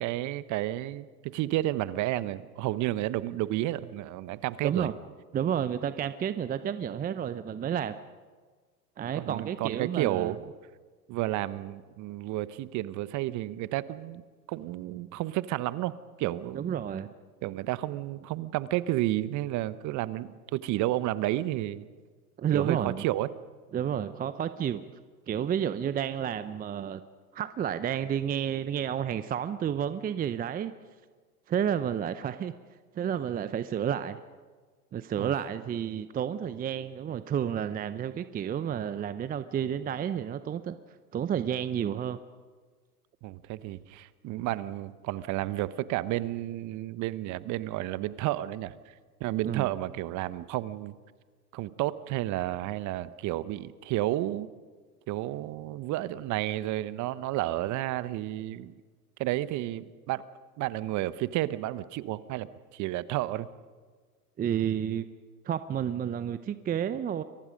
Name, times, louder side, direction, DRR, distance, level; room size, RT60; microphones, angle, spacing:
voice 1, 0.0-4.9 9.1-10.5 11.1-14.2 14.5-16.8 17.4-21.8 22.5-23.3 35.2-35.3 43.2-48.9 49.2-50.9 51.5-54.5 55.1-58.7 59.2-60.2 60.6-62.5 62.7-63.5, right 15 dB, 40° right, 16 dB, 1.1 m, -31 dB
voice 2, 5.3-8.0 9.0-10.3 16.5-17.1 22.4-23.0 23.7-24.9 25.3-27.0 27.3-30.7 31.5-32.5 33.0-34.2 34.9-40.8 41.1-42.2 49.4-49.7 64.4-65.1 65.4-67.2, right 9 dB, 20° right, 13 dB, 0.7 m, -30 dB
29.5 x 23.5 x 5.3 m, 1.5 s
hypercardioid pair, 100°, 47 cm